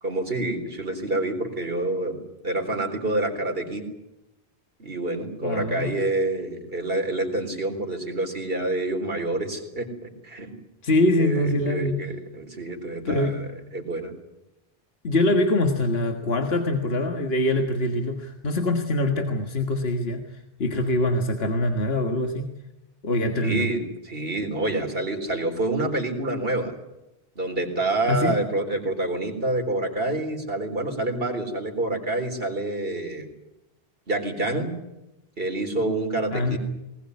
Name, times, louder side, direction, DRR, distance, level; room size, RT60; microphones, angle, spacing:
voice 1, 0.0-2.2 2.4-3.8 4.8-10.5 11.2-13.5 13.7-14.1 23.4-26.7 27.4-33.3 34.1-34.7 35.4-36.6, right 2 dB, 65° right, 3 dB, 4.1 m, -27 dB
voice 2, 5.4-5.9 10.8-12.0 13.0-13.5 15.0-22.5 23.0-23.7 28.1-28.4 36.3-36.6, left 1 dB, 70° left, 5 dB, 1.9 m, -24 dB
21.0 x 19.5 x 9.6 m, 0.94 s
omnidirectional pair, 1.1 m